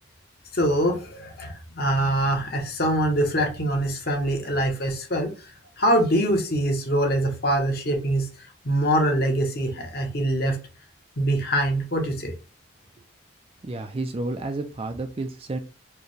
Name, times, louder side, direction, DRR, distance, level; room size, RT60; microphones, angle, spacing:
voice 1, 0.5-5.3 5.8-10.6 11.2-12.3, right 1 dB, 50° left, 2 dB, 1.0 m, -24 dB
voice 2, 13.6-15.6, right 2 dB, 30° right, 7 dB, 0.4 m, -31 dB
4.7 x 2.2 x 3.2 m, 0.32 s
head